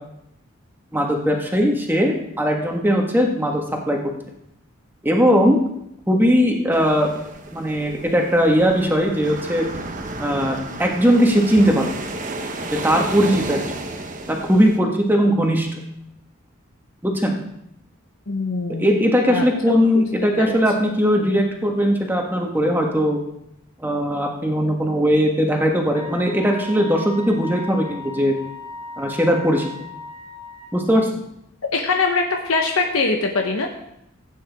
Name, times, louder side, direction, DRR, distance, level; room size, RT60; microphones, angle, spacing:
voice 1, 0.9-4.0 5.0-5.6 6.1-7.1 7.5-9.7 10.2-11.9 12.8-13.6 14.3-15.8 17.0-17.3 18.8-23.2 23.8-28.3 29.0-29.7 30.7-31.1, equal, 10° right, 1 dB, 1.5 m, -19 dB
sound 1, 6.7-14.8, right 2 dB, 40° right, 1.0 m, -32 dB
voice 2, 18.3-18.9 19.3-19.4 20.4-20.6 31.7-33.7, left 3 dB, 90° left, 2 dB, 1.1 m, -22 dB
Wind instrument woodwind instrument, 25.9-30.8, left 2 dB, 25° left, 4.3 m, -37 dB
16.0 x 8.8 x 3.6 m, 0.78 s
head